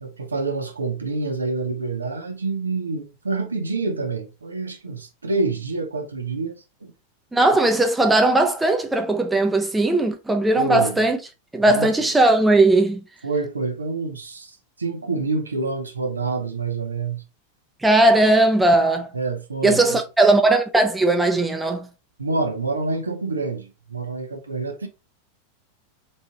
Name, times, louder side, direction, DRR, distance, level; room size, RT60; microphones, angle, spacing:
voice 1, 0.0-6.9 10.6-11.0 11.7-11.9 13.2-17.2 19.1-20.0 22.2-24.9, right 3 dB, 75° right, 0.8 m, -27 dB
voice 2, 7.3-11.2 11.5-13.0 17.8-19.1 19.6-21.9, right 2 dB, 5° right, 0.7 m, -18 dB
4.2 x 3.7 x 2.7 m
figure-of-eight pair, 90°, 0 cm